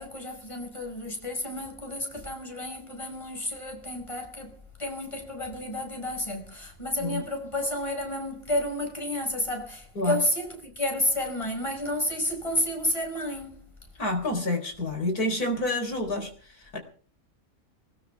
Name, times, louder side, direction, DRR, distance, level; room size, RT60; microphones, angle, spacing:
voice 1, 0.0-13.7, left 1 dB, 20° left, 5.4 m, -31 dB
voice 2, 14.0-16.3 16.7-16.8, left 2 dB, 85° left, 4.6 m, -28 dB
20.5 x 19.0 x 3.5 m
omnidirectional pair, 1.6 m